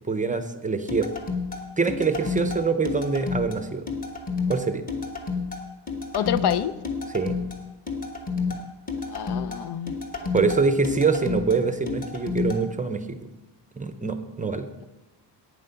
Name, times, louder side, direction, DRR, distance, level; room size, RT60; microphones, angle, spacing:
voice 1, 0.1-1.1 1.8-3.8 4.5-4.8 7.1-7.4 10.3-13.2 13.8-14.7, right 4 dB, 20° right, 9 dB, 0.5 m, -24 dB
sound 1, 0.9-12.6, left 4 dB, 20° left, 1.2 m, -30 dB
voice 2, 6.1-6.7 9.1-9.9, left 10 dB, 65° left, 14 dB, 0.6 m, -27 dB
11.5 x 8.9 x 5.6 m, 1.0 s
wide cardioid pair, 175°, 43 cm